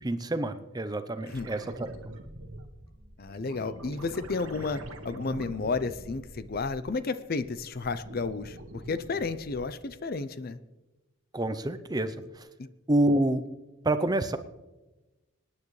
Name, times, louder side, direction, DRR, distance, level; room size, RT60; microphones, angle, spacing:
voice 1, 0.0-1.9 11.3-12.5 12.9-13.4 13.8-14.4, right 1 dB, 20° right, 10 dB, 0.6 m, -27 dB
sound 1, 1.2-7.0 7.4-9.9 12.4-12.5, right 1 dB, 90° right, 1.5 m, -45 dB
voice 2, 3.2-10.6 12.6-12.7, left 4 dB, 45° left, 13 dB, 0.5 m, -32 dB
26.0 x 9.7 x 3.2 m, 1.1 s
head